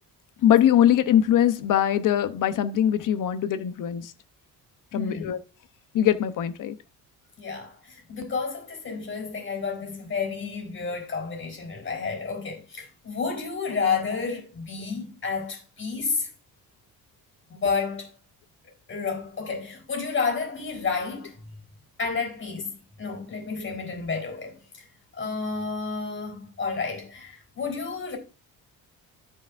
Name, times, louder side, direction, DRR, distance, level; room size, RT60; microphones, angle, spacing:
voice 1, 0.4-4.1 4.9-5.4 5.9-6.8, left 10 dB, 60° left, 0.9 m, -22 dB
voice 2, 4.9-5.3 7.4-16.3 17.5-18.1 18.6-21.4 22.0-24.8 25.1-28.2, left 5 dB, 35° left, 4.0 m, -31 dB
13.5 x 5.0 x 2.6 m
cardioid pair, 110°, 36 cm